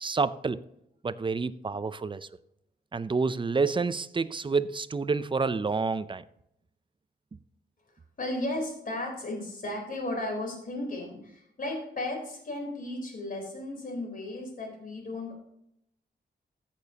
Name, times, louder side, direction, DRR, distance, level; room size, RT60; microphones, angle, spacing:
voice 1, 0.0-0.6 1.0-2.3 2.9-6.2, right 4 dB, 25° right, 0.4 m, -28 dB
voice 2, 8.2-15.4, left 1 dB, 50° left, 3.8 m, -35 dB
14.5 x 6.8 x 2.8 m
cardioid pair, 90°, 18 cm